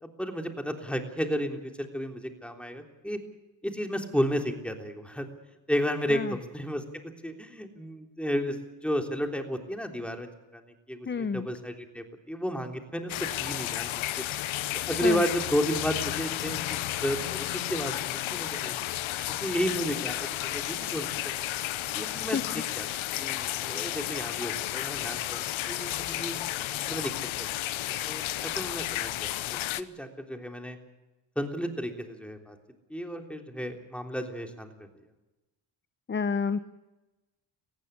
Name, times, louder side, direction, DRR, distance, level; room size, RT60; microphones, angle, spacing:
voice 1, 0.0-3.2 3.6-5.3 5.7-6.8 7.2-10.6 10.9-14.2 14.8-18.7 19.4-21.5 21.9-22.9 23.2-26.4 26.8-27.5 27.8-30.8 31.4-32.6 32.9-34.7, equal, ahead, 4 dB, 3.5 m, -32 dB
voice 2, 11.1-11.5 15.0-15.2 22.3-22.4 36.1-36.6, left 5 dB, 25° left, 13 dB, 0.9 m, -29 dB
sound 1, 13.1-29.8, left 14 dB, 75° left, 1.0 m, -32 dB
18.5 x 15.5 x 9.9 m, 1.1 s
cardioid pair, 80°, 48 cm